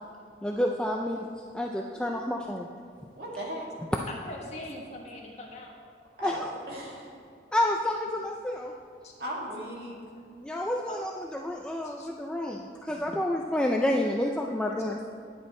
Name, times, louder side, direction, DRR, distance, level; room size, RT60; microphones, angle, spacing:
voice 1, 0.4-1.3 1.5-2.7 6.2-6.4 7.5-8.7 10.4-15.1, left 1 dB, 5° left, 0 dB, 0.3 m, -29 dB
voice 2, 3.2-3.7 6.2-7.1 9.2-10.0, right 1 dB, 60° right, -3 dB, 2.1 m, -37 dB
voice 3, 4.1-5.8 9.0-9.1 10.1-10.2 10.9-11.0 11.8-12.1 14.2-14.3, left 1 dB, 35° left, -1 dB, 1.4 m, -42 dB
10.5 x 8.7 x 4.2 m, 2.4 s
head